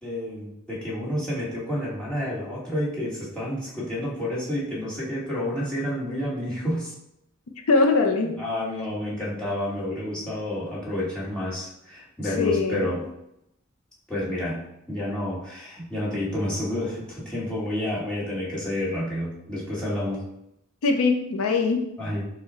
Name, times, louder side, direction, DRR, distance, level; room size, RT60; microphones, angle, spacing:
voice 1, 0.0-6.9 8.4-13.0 14.1-14.6 14.9-20.2 22.0-22.3, left 1 dB, 5° left, -9 dB, 1.6 m, -29 dB
voice 2, 7.7-8.4 12.4-12.8 20.8-21.8, left 3 dB, 80° left, 4 dB, 0.5 m, -21 dB
5.8 x 2.2 x 4.1 m, 0.81 s
head